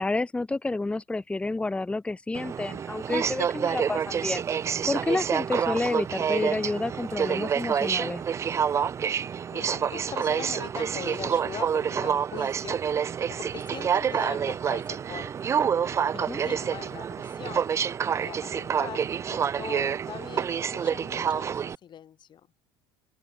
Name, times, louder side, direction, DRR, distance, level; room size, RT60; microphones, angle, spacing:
voice 1, 0.0-4.4 4.8-8.2 16.3-16.4, left 2 dB, 10° left, 1.0 m, -29 dB
Aircraft, 2.3-21.8, right 7 dB, 25° right, 0.3 m, -28 dB
voice 2, 9.5-15.3 16.1-17.7 18.2-22.5, left 9 dB, 40° left, 6.1 m, -41 dB
supercardioid pair, 100°, 12 cm